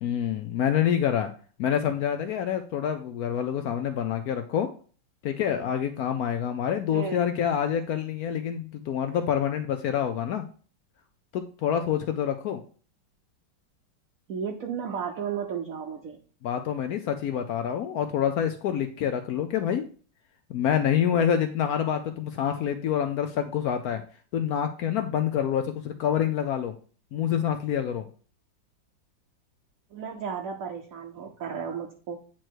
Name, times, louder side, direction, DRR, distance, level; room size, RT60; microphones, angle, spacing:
voice 1, 0.0-1.3 1.6-4.7 5.2-10.4 11.3-12.6 16.4-19.8 20.5-24.0 24.3-26.7 27.1-28.1, left 9 dB, 75° left, 7 dB, 0.8 m, -27 dB
voice 2, 14.3-16.2 29.9-32.2, right 7 dB, 60° right, 2 dB, 0.9 m, -33 dB
8.9 x 3.1 x 4.5 m, 0.42 s
omnidirectional pair, 2.1 m